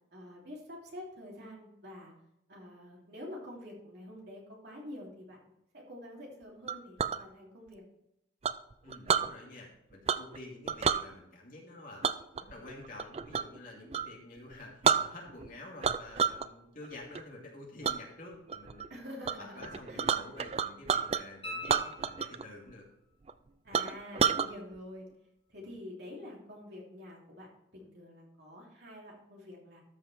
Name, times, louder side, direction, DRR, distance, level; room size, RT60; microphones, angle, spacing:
voice 1, 0.1-2.1 2.5-5.4 5.7-7.8 9.0-9.3 18.9-20.2 23.6-25.1 25.5-29.8, left 1 dB, 55° right, -3 dB, 3.0 m, -47 dB
Chink clink, 6.7-7.2 8.4-9.3 10.1-10.4 10.7-11.0 12.0-13.6 13.9-14.1 14.5-14.6 14.8-15.5 15.8-16.5 16.8-17.2 17.8-18.0 18.5-18.9 19.2-19.4 19.6-21.2 21.6-22.4 22.7-22.8 23.3-23.4 23.7-24.5, right 7 dB, 30° right, 0.3 m, -29 dB
voice 2, 8.8-12.1 12.4-18.8 19.4-22.8, left 2 dB, 45° left, -2 dB, 2.5 m, -49 dB
sound 1, 21.4-22.8 25.6-25.7, left 1 dB, 30° left, 2.3 m, -44 dB
13.0 x 5.4 x 4.3 m, 0.81 s
head